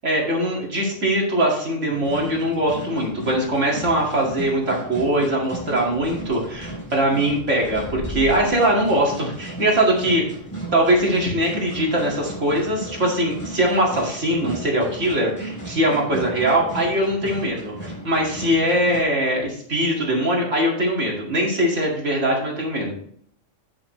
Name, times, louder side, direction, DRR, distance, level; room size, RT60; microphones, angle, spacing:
voice 1, 0.0-10.2 10.7-22.9, right 1 dB, 75° right, -2 dB, 2.6 m, -21 dB
sound 1, 1.9-19.0, right 2 dB, 15° left, 3.6 m, -35 dB
8.3 x 7.6 x 3.1 m, 0.64 s
omnidirectional pair, 1.3 m